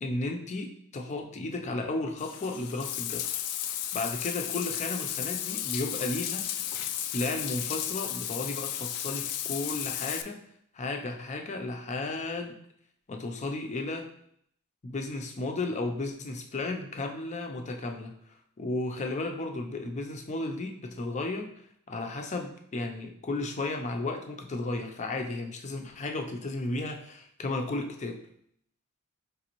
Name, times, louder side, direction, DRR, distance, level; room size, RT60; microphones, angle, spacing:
voice 1, 0.0-3.3 3.9-6.5 7.1-10.4 10.7-12.6 13.1-14.1 14.8-18.1 18.6-21.5 21.9-28.2, left 2 dB, 30° left, 4 dB, 0.5 m, -34 dB
Bathtub (filling or washing), 2.2-10.2, left 11 dB, 90° left, 0.4 m, -34 dB
5.0 x 3.2 x 3.0 m, 0.67 s
head